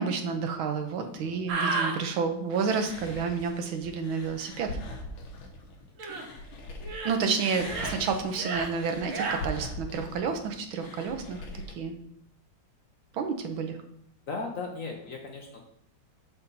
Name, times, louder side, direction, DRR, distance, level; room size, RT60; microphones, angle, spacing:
voice 1, 0.0-4.7 7.0-11.4 11.7-11.9 13.1-13.8, right 5 dB, 85° right, 6 dB, 1.7 m, -30 dB
voice 2, 1.0-1.5 14.3-15.6, left 4 dB, 55° left, 2 dB, 0.9 m, -37 dB
sound 1, 1.5-2.0 6.0-6.3 6.8-7.2 7.6-8.0 8.3-8.7 9.1-9.4, right 3 dB, 50° right, 1.1 m, -31 dB
sound 2, 2.5-6.9 7.2-11.7, left 1 dB, 85° left, 1.9 m, -41 dB
6.8 x 5.5 x 4.1 m, 0.70 s
omnidirectional pair, 2.2 m